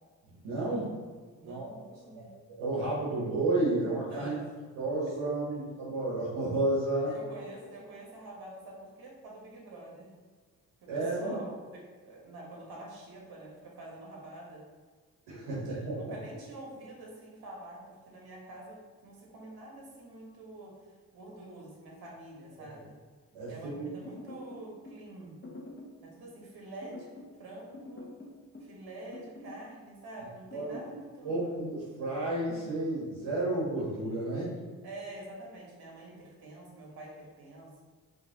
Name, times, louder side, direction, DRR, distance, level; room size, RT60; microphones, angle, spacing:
voice 1, 0.4-0.9 1.4-1.7 2.1-2.2 2.5-4.3 4.8-7.1 10.9-11.4 15.3-16.1 23.3-23.9 30.5-30.7 31.2-34.5, right 2 dB, 85° right, -8 dB, 1.0 m, -31 dB
voice 2, 1.4-2.3 4.1-4.4 5.5-5.6 7.1-10.1 10.8-14.6 15.3-23.0 23.5-25.3 26.0-27.1 27.4-28.1 28.6-31.6 34.8-37.8, right 2 dB, 65° right, -3 dB, 1.5 m, -47 dB
sound 1, 24.0-25.0 25.4-26.0 26.8-27.4 27.7-28.8 29.1-29.7 30.5-31.0, left 2 dB, 30° left, 1.0 m, -46 dB
4.6 x 3.0 x 2.9 m, 1.5 s
hypercardioid pair, 40°, 40 cm